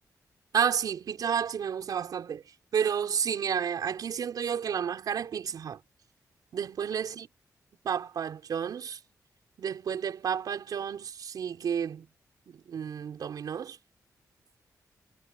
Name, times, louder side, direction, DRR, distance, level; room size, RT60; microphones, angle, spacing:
voice 1, 0.5-2.4 2.7-5.8 6.5-7.3 7.8-9.0 9.6-12.1 12.5-13.8, right 7 dB, 80° right, 5.4 m, -31 dB
cardioid pair, 95°, 6 cm